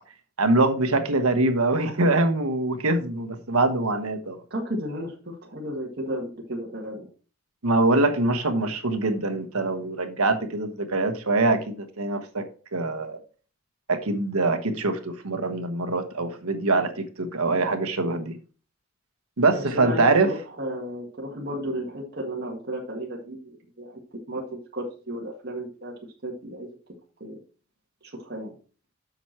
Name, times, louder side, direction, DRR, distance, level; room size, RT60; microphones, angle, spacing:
voice 1, 0.4-4.4 7.6-12.4 12.7-13.2 13.9-18.4 19.4-20.3, right 2 dB, 75° right, 1.2 m, -23 dB
voice 2, 4.5-7.1 19.5-24.0 24.3-25.9 26.2-26.7 27.2-27.4 28.1-28.5, equal, 45° right, 1.9 m, -33 dB
8.0 x 6.1 x 4.4 m
head